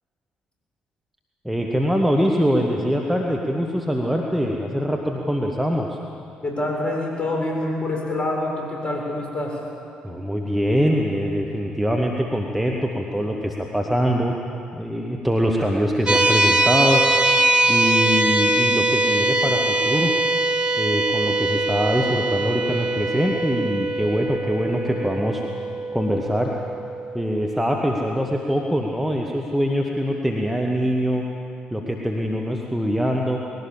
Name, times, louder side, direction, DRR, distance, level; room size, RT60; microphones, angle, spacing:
voice 1, 1.4-6.0 10.0-14.3 14.7-17.0 17.7-20.1 20.8-25.4 25.9-26.5 27.1-31.2 31.7-33.4, equal, 5° right, 0 dB, 2.1 m, -23 dB
voice 2, 6.4-9.6, left 1 dB, 25° left, -1 dB, 7.4 m, -26 dB
sound 1, 16.1-27.2, right 2 dB, 25° right, 2.0 m, -22 dB
21.0 x 17.5 x 7.6 m, 2.5 s
hypercardioid pair, 45°, 4 cm